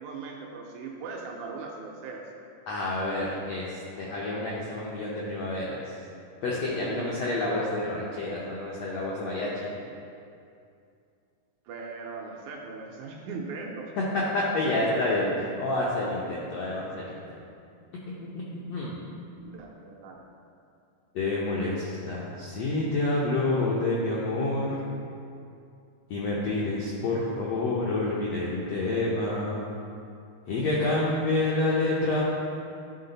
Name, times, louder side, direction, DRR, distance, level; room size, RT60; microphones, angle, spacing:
voice 1, 0.0-2.3 6.7-7.2 11.7-13.9 19.5-20.3, right 4 dB, 85° right, 0 dB, 1.7 m, -39 dB
voice 2, 2.7-5.8 6.4-9.5 14.1-17.2 18.5-19.0 21.1-24.8 26.1-29.7 30.5-32.2, left 2 dB, 85° left, -5 dB, 1.4 m, -28 dB
11.0 x 3.8 x 4.0 m, 2.5 s
omnidirectional pair, 4.0 m